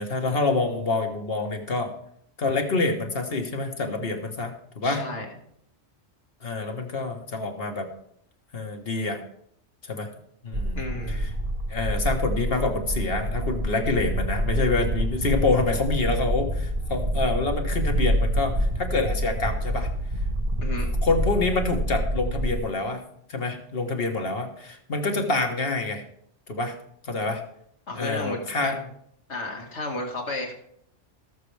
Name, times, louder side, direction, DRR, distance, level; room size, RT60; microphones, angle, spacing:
voice 1, 0.0-1.9 2.4-5.0 6.4-7.9 8.5-9.2 9.9-10.1 10.4-10.8 11.1-11.3 11.7-19.9 21.0-23.0 23.3-26.0 26.5-26.8 27.0-27.4 27.9-28.8, left 3 dB, 55° left, 4 dB, 1.6 m, -27 dB
voice 2, 4.8-5.3 10.7-11.2 20.6-20.9 27.9-28.8 29.3-30.5, left 2 dB, 80° left, 0 dB, 2.3 m, -33 dB
sound 1, 10.5-22.6, equal, 50° right, 1.3 m, -27 dB
19.0 x 6.7 x 3.4 m, 0.71 s
omnidirectional pair, 1.2 m